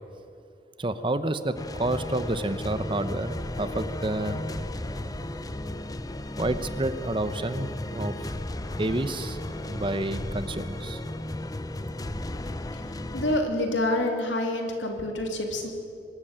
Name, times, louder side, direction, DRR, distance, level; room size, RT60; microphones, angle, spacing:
voice 1, 0.8-4.4 6.4-8.3 8.8-9.4 9.7-11.0, right 2 dB, 30° right, 11 dB, 0.9 m, -29 dB
sound 1, 1.6-13.4, left 1 dB, 20° left, 0.7 m, -34 dB
voice 2, 13.1-15.7, left 1 dB, 85° left, 3 dB, 3.1 m, -27 dB
24.0 x 13.5 x 8.9 m, 2.7 s
head